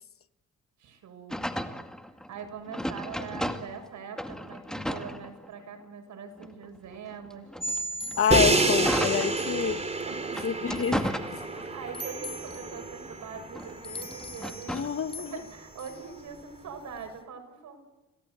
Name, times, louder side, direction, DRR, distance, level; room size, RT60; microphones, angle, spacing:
voice 1, 0.8-1.4 2.3-7.5 9.5-9.6 10.0-10.5 11.7-14.9 15.2-17.8, right 6 dB, 70° right, 7.0 m, -42 dB
sound 1, 1.3-3.9 4.2-5.8 6.4-9.8 10.3-11.9 12.3-15.0, equal, ahead, 2.2 m, -35 dB
sound 2, 7.6-17.2, right 1 dB, 20° left, 4.0 m, -41 dB
voice 2, 8.2-9.9 10.4-11.4 14.7-15.4, left 7 dB, 45° left, 1.4 m, -28 dB
Crash cymbal, 8.3-14.3, right 3 dB, 20° right, 3.8 m, -29 dB
27.5 x 18.5 x 8.1 m
cardioid pair, 90°, 30 cm